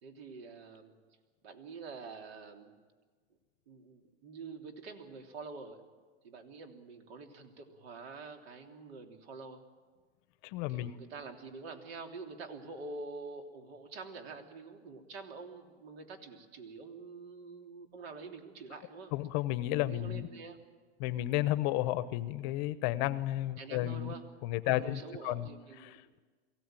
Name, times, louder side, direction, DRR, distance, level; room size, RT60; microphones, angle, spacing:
voice 1, 0.0-0.9 1.4-2.7 3.7-5.8 6.2-9.6 10.7-19.1 19.8-20.6 23.6-24.2 24.6-26.1, right 4 dB, 65° right, 4 dB, 3.3 m, -46 dB
voice 2, 10.4-10.9 19.1-20.3 21.0-24.1 24.4-25.5 25.8-26.2, left 15 dB, 45° left, 15 dB, 0.9 m, -32 dB
23.0 x 16.5 x 9.0 m, 1.4 s
supercardioid pair, 145°, 32 cm